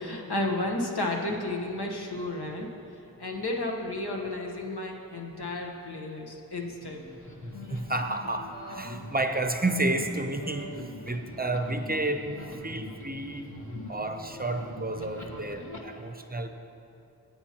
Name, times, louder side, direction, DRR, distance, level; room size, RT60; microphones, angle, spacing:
voice 1, 0.0-2.7 3.2-7.0, left 2 dB, 80° left, 0 dB, 1.2 m, -32 dB
sound 1, 6.8-15.8, left 1 dB, 50° left, 1.4 m, -42 dB
voice 2, 7.7-10.7 11.0-12.4 12.6-13.5 13.9-16.5, right 2 dB, 25° right, 6 dB, 0.6 m, -31 dB
16.0 x 8.8 x 2.9 m, 2.8 s
wide cardioid pair, 40°, 39 cm